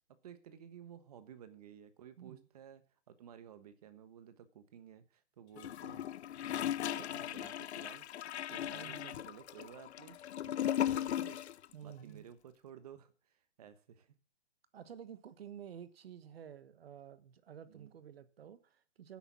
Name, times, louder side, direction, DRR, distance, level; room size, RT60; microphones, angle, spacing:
voice 1, 0.1-6.1 6.8-8.1 8.5-11.4 11.8-14.1 17.7-17.9, right 9 dB, 35° right, 12 dB, 1.2 m, -54 dB
voice 2, 2.2-2.5 7.1-7.2 8.7-9.2 11.7-12.3 14.7-19.2, right 9 dB, 55° right, 14 dB, 1.2 m, -51 dB
Gurgling / Toilet flush, 5.6-11.7 11.9-12.0, left 11 dB, 65° left, 0.6 m, -37 dB
10.0 x 8.5 x 6.1 m, 0.40 s
hypercardioid pair, 175°, 36 cm